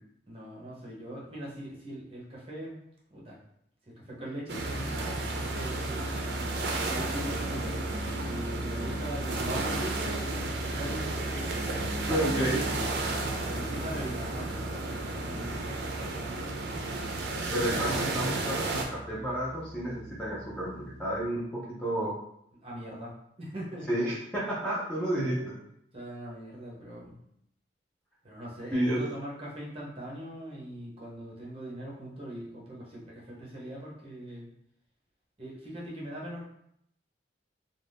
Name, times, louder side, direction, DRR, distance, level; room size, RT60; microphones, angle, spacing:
voice 1, 0.3-2.8 3.1-3.4 4.0-5.1 5.5-6.1 6.8-7.8 8.3-11.3 13.4-16.7 22.6-23.9 25.2-25.4 25.9-27.2 28.2-34.5 35.4-36.4, right 1 dB, 30° right, -5 dB, 0.7 m, -41 dB
sound 1, 4.5-18.9, right 3 dB, 65° right, 0.4 m, -34 dB
sound 2, 4.6-21.2, equal, 70° left, 0.6 m, -38 dB
voice 2, 12.1-12.6 17.5-22.1 23.9-25.5 28.7-29.0, right 1 dB, 5° left, -7 dB, 0.5 m, -31 dB
2.5 x 2.2 x 3.3 m, 0.75 s
head